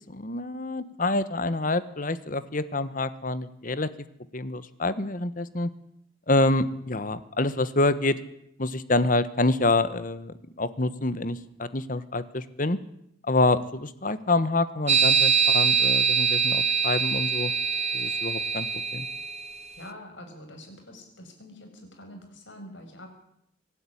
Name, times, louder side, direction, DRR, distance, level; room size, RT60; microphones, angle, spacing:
voice 1, 0.1-3.9 4.3-5.7 6.3-8.2 8.6-12.8 13.3-17.5 17.9-18.7 18.9-19.1, left 2 dB, 45° left, 14 dB, 1.3 m, -27 dB
sound 1, 14.9-19.6, right 6 dB, 35° right, 1.1 m, -23 dB
voice 2, 19.8-23.1, left 1 dB, 70° left, 3 dB, 6.8 m, -45 dB
25.0 x 12.5 x 10.0 m, 0.75 s
head